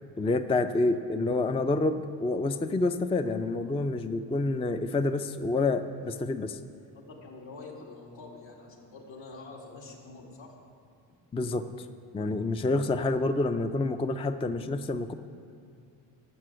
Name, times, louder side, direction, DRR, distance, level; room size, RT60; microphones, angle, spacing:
voice 1, 0.2-6.6 11.3-11.7 12.1-15.1, left 2 dB, 15° left, 9 dB, 0.4 m, -28 dB
voice 2, 6.9-10.5, left 3 dB, 75° left, -1 dB, 2.6 m, -46 dB
12.5 x 6.0 x 7.7 m, 2.5 s
cardioid pair, 85°, 46 cm